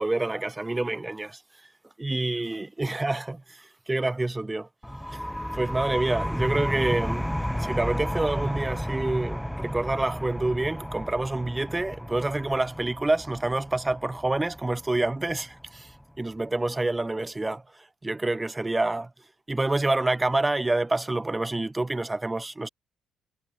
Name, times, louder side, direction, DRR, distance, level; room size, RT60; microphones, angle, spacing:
voice 1, 0.0-1.4 2.0-4.7 5.1-5.2 5.5-15.9 16.2-19.1 19.5-22.7, right 2 dB, 15° right, 2.2 m, -27 dB
sound 1, 4.8-16.2, equal, ahead, 3.2 m, -33 dB
cardioid pair, 90°, 0 cm